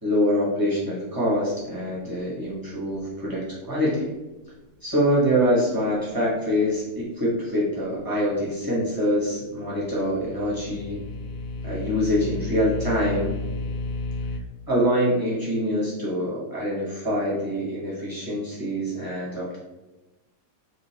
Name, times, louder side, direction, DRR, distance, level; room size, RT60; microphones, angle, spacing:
voice 1, 0.0-4.1 4.8-11.0 11.6-13.3 14.7-19.6, equal, 15° right, -7 dB, 0.7 m, -25 dB
sound 1, 9.9-14.4, left 3 dB, 75° left, 1.0 m, -32 dB
4.3 x 2.5 x 2.9 m, 1.1 s
omnidirectional pair, 2.4 m